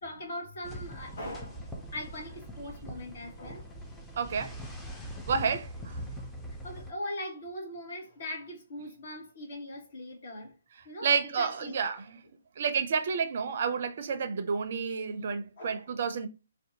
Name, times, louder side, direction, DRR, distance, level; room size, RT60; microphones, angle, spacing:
voice 1, 0.0-3.7 6.6-10.6 10.8-11.8 15.6-15.8, left 1 dB, 55° left, 1.0 m, -40 dB
sound 1, 0.6-6.9, equal, 5° left, 0.5 m, -42 dB
voice 2, 4.2-4.6 5.3-6.0 11.0-12.2 12.6-16.3, right 6 dB, 50° right, 0.4 m, -30 dB
2.6 x 2.2 x 2.7 m
figure-of-eight pair, 135°, 0 cm